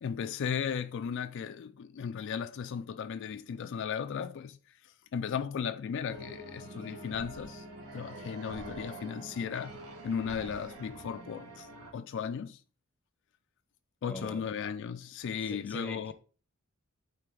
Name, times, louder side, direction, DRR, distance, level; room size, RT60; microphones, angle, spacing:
voice 1, 0.0-4.6 5.1-7.7 7.9-9.8 10.0-11.7 11.9-12.6 14.0-16.1, left 7 dB, 55° left, 0.3 m, -36 dB
sound 1, 6.1-11.9, right 1 dB, 75° right, 1.7 m, -46 dB
voice 2, 14.1-14.5 15.5-16.1, left 1 dB, 5° left, 0.8 m, -42 dB
9.0 x 3.8 x 3.9 m
head